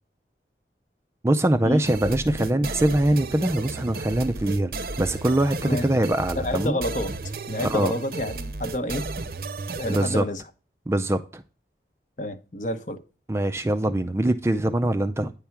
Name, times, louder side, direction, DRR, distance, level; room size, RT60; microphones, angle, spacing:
voice 1, 1.2-4.7 5.0-6.8 7.6-7.9 9.9-10.2 10.9-11.4 13.3-15.3, right 1 dB, 15° right, 0.4 m, -23 dB
sound 1, 1.9-10.2, right 3 dB, 55° right, 0.6 m, -33 dB
voice 2, 6.4-7.1 7.5-9.1 9.8-10.4 12.2-13.0, left 1 dB, 45° left, 0.8 m, -28 dB
9.6 x 3.4 x 5.8 m
head